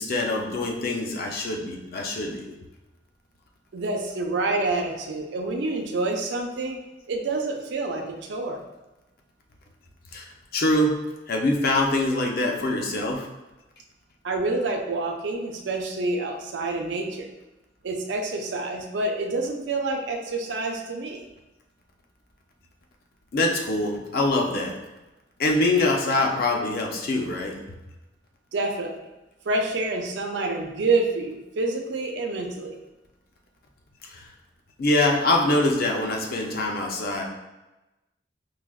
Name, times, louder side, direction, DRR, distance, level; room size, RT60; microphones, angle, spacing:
voice 1, 0.0-2.6 10.1-10.3 10.5-10.9 11.3-13.3 23.3-24.8 25.4-27.6 34.1-34.2 34.8-37.2, left 2 dB, 55° left, 1 dB, 0.5 m, -24 dB
voice 2, 3.7-6.8 7.1-8.6 14.2-17.3 17.8-21.2 28.5-29.0 29.5-32.8, right 2 dB, 85° right, 1 dB, 0.5 m, -27 dB
4.7 x 2.0 x 2.3 m, 1.0 s
head